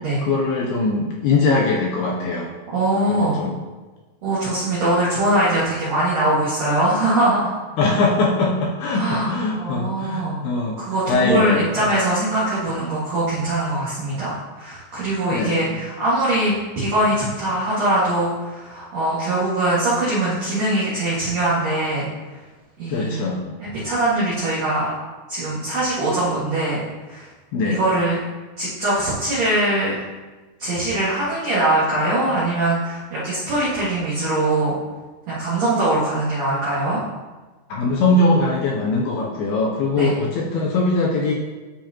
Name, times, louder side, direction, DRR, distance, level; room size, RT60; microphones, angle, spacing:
voice 1, 0.3-2.5 3.1-3.6 7.8-10.8 11.1-11.9 15.3-15.8 22.9-23.4 27.5-27.8 37.7-41.3, left 3 dB, 75° left, -2 dB, 2.5 m, -21 dB
voice 2, 2.7-3.4 4.2-7.5 8.9-10.4 10.8-22.0 22.8-23.3 23.6-24.9 25.3-26.8 27.1-27.3 27.7-28.2 28.6-29.9 30.6-34.8 35.3-37.0 40.0-40.1, right 1 dB, 50° right, -11 dB, 2.5 m, -22 dB
11.5 x 5.2 x 2.9 m, 1.3 s
omnidirectional pair, 4.9 m